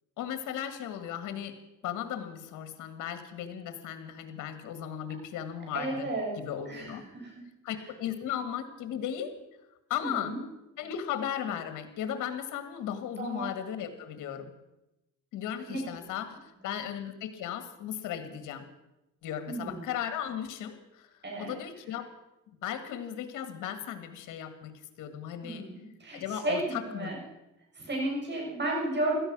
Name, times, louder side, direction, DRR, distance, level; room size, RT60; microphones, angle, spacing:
voice 1, 0.2-1.6 1.8-6.1 6.4-7.0 7.6-9.3 9.9-10.3 10.8-14.5 15.3-18.6 19.2-21.1 21.4-22.1 22.5-25.6 26.1-27.1, left 9 dB, 90° left, 10 dB, 1.8 m, -36 dB
voice 2, 5.7-6.3 6.7-7.4 10.0-10.4 13.2-13.5 15.7-15.9 19.5-19.8 21.2-21.6 25.4-27.2 27.8-29.2, right 2 dB, 35° right, -2 dB, 7.1 m, -33 dB
16.5 x 13.0 x 6.1 m, 0.93 s
cardioid pair, 90°, 30 cm